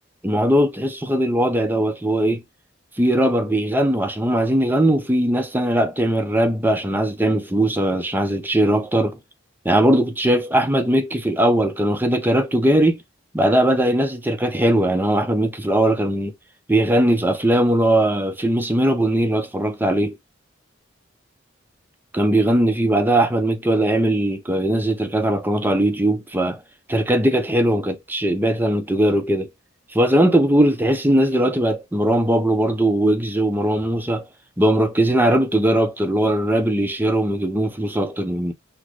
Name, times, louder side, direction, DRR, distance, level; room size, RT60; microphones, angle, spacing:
voice 1, 0.2-2.4 3.0-9.2 9.6-13.0 13.3-16.3 16.7-20.2 22.1-26.6 26.9-29.5 29.9-34.2 34.6-38.5, right 1 dB, 10° right, 0.7 m, -19 dB
6.2 x 2.2 x 3.1 m
head